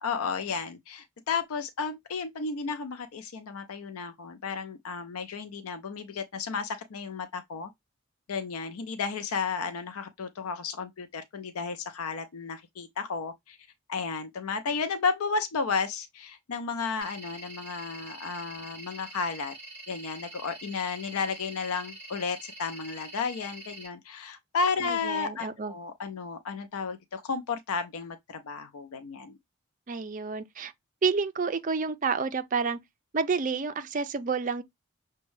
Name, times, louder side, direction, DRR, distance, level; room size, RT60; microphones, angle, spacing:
voice 1, 0.0-7.7 8.3-13.6 13.9-19.5 19.9-29.4, left 5 dB, 85° left, 0.5 m, -33 dB
sound 1, 17.0-23.9, right 2 dB, 10° right, 3.5 m, -45 dB
voice 2, 24.8-25.7 29.9-30.7 31.0-32.8 33.1-34.6, right 5 dB, 35° right, 0.4 m, -29 dB
6.1 x 2.2 x 3.1 m
head